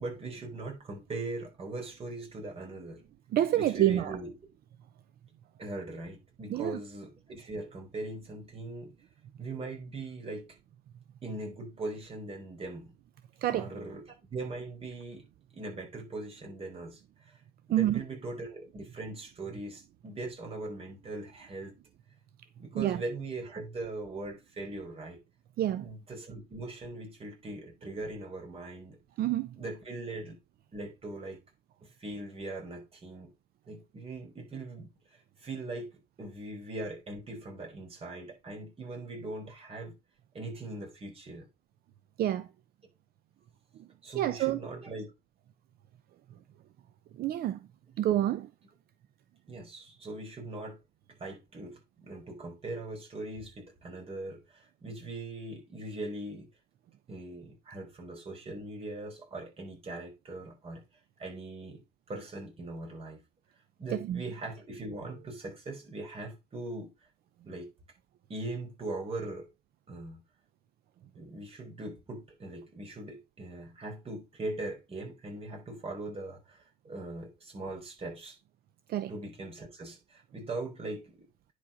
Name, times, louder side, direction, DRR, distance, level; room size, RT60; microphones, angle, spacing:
voice 1, 0.0-3.0 3.5-4.3 5.6-8.9 9.4-10.5 11.2-12.9 13.5-14.0 14.3-15.3 15.5-17.4 17.7-21.7 22.6-25.2 25.8-29.0 29.6-30.4 30.7-31.4 31.8-33.3 33.7-39.9 40.3-41.5 44.0-45.1 49.5-50.8 51.1-56.5 57.1-60.8 61.2-61.8 62.1-63.2 63.8-66.9 67.4-67.7 68.3-69.5 69.9-70.2 71.1-78.4 79.1-81.3, right 2 dB, 35° right, 5.1 m, -40 dB
voice 2, 3.3-4.2 6.5-6.8 13.4-13.7 17.7-18.0 22.7-23.0 25.6-25.9 29.2-29.6 42.2-42.5 43.8-43.9 44.2-44.6 47.1-47.7 48.0-48.5 63.9-64.2 78.9-79.1, right 12 dB, 65° right, 0.7 m, -28 dB
10.0 x 5.0 x 5.1 m
cardioid pair, 110°, 17 cm